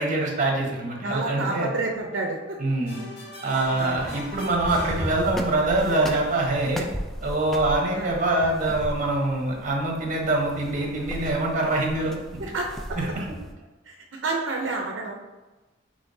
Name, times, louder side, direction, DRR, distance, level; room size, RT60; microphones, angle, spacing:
voice 1, 0.0-1.7 2.6-3.0 3.4-6.9 7.2-12.1 13.0-13.3, right 2 dB, 40° right, 0 dB, 1.0 m, -24 dB
voice 2, 1.0-2.4 3.8-4.0 7.9-8.1 12.5-13.0 13.9-14.0 14.2-15.2, right 3 dB, 75° right, 0 dB, 0.6 m, -29 dB
sound 1, 2.9-5.8, left 2 dB, 60° left, 1.1 m, -40 dB
sound 2, 3.5-13.5, equal, ahead, 0.3 m, -36 dB
5.9 x 3.2 x 2.7 m, 1.1 s
head